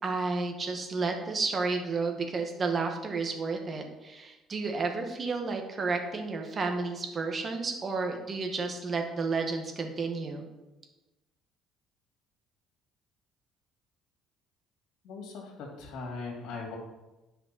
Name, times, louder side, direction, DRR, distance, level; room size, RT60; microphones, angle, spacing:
voice 1, 0.0-10.5, right 4 dB, 40° right, 3 dB, 1.8 m, -31 dB
voice 2, 15.0-16.8, left 4 dB, 70° left, 1 dB, 2.6 m, -39 dB
10.0 x 5.6 x 4.4 m, 1.1 s
hypercardioid pair, 65°, 0 cm